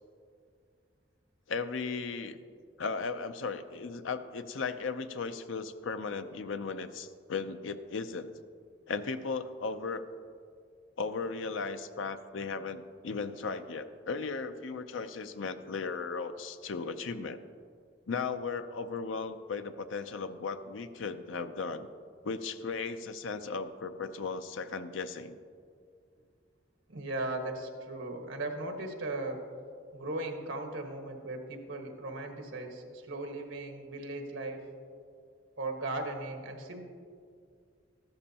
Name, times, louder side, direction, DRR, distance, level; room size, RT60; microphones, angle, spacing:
voice 1, 1.5-2.4 2.8-8.3 8.9-10.0 11.0-17.4 18.1-21.9 22.2-25.4, left 4 dB, 90° left, 10 dB, 0.6 m, -36 dB
voice 2, 26.9-29.4 29.9-34.6 35.6-36.8, right 2 dB, 85° right, 3 dB, 1.4 m, -37 dB
14.0 x 12.5 x 2.9 m, 2.2 s
head